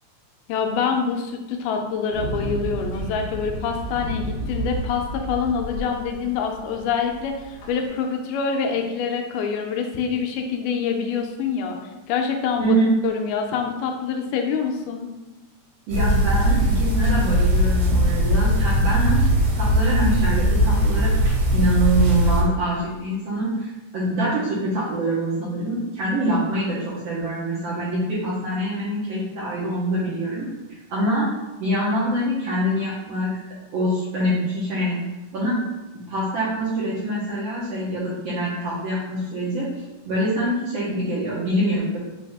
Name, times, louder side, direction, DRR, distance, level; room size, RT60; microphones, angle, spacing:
voice 1, 0.5-11.8 12.1-12.8 13.0-15.1, left 6 dB, 85° left, 3 dB, 2.1 m, -26 dB
sound 1, 2.1-7.9, right 1 dB, 70° left, 1.4 m, -32 dB
voice 2, 15.9-21.1 21.5-30.5 30.9-31.3 31.6-33.4 33.7-35.0 35.3-35.6 36.1-39.7 40.1-42.0, right 1 dB, 70° right, -8 dB, 1.6 m, -25 dB
sound 2, 15.9-22.4, equal, 85° right, 2.7 m, -19 dB
5.4 x 2.7 x 3.4 m, 1.1 s
omnidirectional pair, 3.8 m